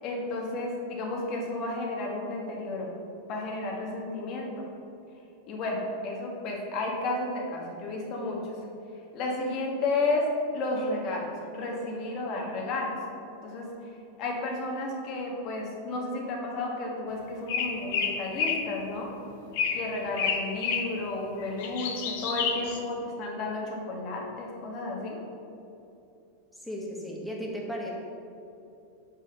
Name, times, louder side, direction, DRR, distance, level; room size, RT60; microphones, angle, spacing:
voice 1, 0.0-2.9 3.3-4.6 5.5-8.6 9.1-13.0 13.4-13.7 14.2-19.1 19.7-25.2, left 2 dB, 45° left, -1 dB, 1.7 m, -32 dB
sound 1, 17.5-18.7 19.5-19.9 20.2-20.9 21.4-22.8, left 6 dB, 65° left, 0.9 m, -29 dB
voice 2, 26.5-27.9, equal, ahead, -3 dB, 1.6 m, -35 dB
6.8 x 4.9 x 5.5 m, 2.7 s
hypercardioid pair, 105°, 0 cm